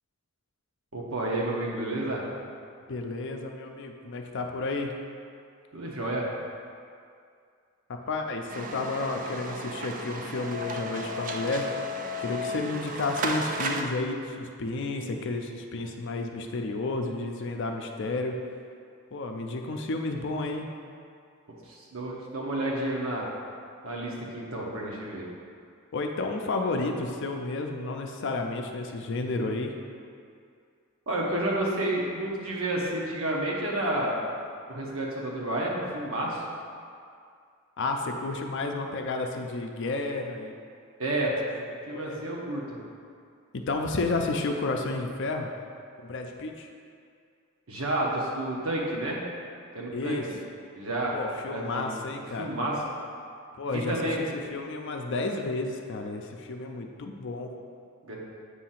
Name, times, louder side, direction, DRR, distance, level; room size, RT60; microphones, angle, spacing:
voice 1, 0.9-2.2 5.7-6.3 21.7-23.3 23.8-25.2 31.1-34.1 34.7-36.4 41.0-41.4 41.9-42.6 47.7-49.2 49.7-50.2 50.8-51.1 51.5-51.9 52.3-52.8 53.7-54.2 58.0-58.2, right 1 dB, 70° right, -3 dB, 1.2 m, -30 dB
voice 2, 2.9-4.9 7.9-11.7 12.2-18.3 19.1-20.7 25.9-29.7 37.8-40.6 41.9-42.2 43.5-45.5 46.0-46.7 49.9-50.3 51.1-52.5 53.6-57.5, left 3 dB, 55° left, 3 dB, 0.5 m, -31 dB
sound 1, 8.5-13.8, equal, 35° right, 0.4 m, -34 dB
8.1 x 2.8 x 5.7 m, 2.3 s
head